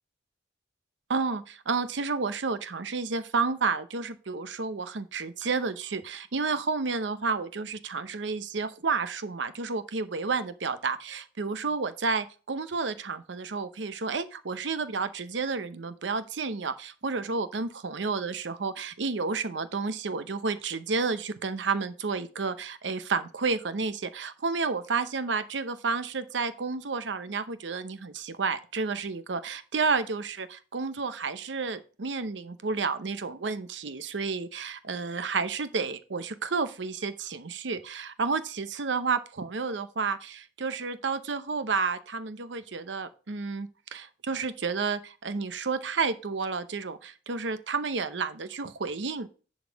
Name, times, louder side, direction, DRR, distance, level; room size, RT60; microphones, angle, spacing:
voice 1, 1.1-49.4, right 4 dB, 85° right, 13 dB, 0.7 m, -31 dB
10.5 x 3.9 x 5.1 m, 0.37 s
head